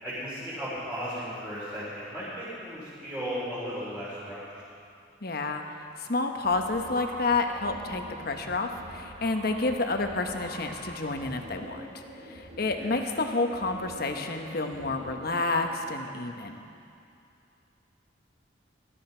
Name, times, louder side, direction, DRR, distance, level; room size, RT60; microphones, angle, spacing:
voice 1, 0.0-4.4 12.7-13.0, equal, 10° right, -13 dB, 4.0 m, -36 dB
voice 2, 5.2-5.6 6.0-11.8 12.3-16.6, left 3 dB, 50° left, 5 dB, 1.0 m, -29 dB
sound 1, 6.4-15.9, right 1 dB, 65° right, 3.9 m, -44 dB
19.0 x 13.0 x 4.5 m, 2.6 s
head